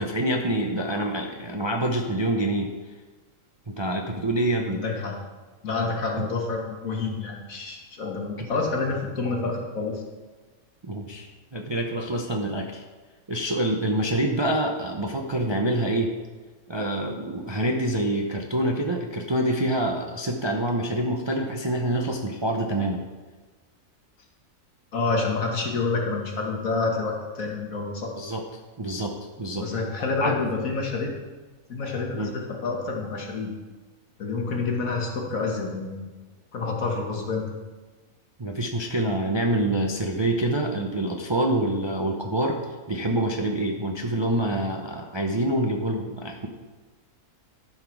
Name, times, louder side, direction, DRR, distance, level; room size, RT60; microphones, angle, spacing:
voice 1, 0.0-2.7 3.7-4.8 6.1-6.3 8.4-8.5 10.8-11.3 11.5-12.8 13.3-16.1 16.7-23.0 28.2-28.4 28.8-29.7 30.2-30.4 32.1-32.3 38.4-42.6 42.9-46.5, right 1 dB, 35° right, 2 dB, 0.4 m, -26 dB
voice 2, 4.7-5.2 5.6-10.0 24.9-28.1 29.6-31.1 31.7-33.5 34.2-36.0 36.5-37.5, left 3 dB, 70° left, 0 dB, 1.9 m, -28 dB
12.0 x 5.8 x 4.6 m, 1.3 s
omnidirectional pair, 1.5 m